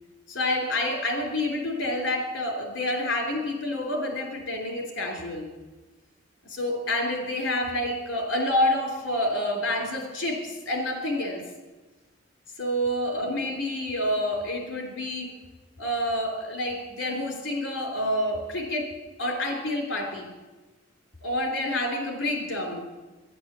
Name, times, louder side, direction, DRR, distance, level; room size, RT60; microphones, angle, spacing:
voice 1, 0.3-5.5 6.4-11.4 12.6-15.3 15.8-18.8 19.2-20.3 21.2-22.9, left 1 dB, 60° left, 2 dB, 3.1 m, -28 dB
11.0 x 9.8 x 7.4 m, 1.2 s
head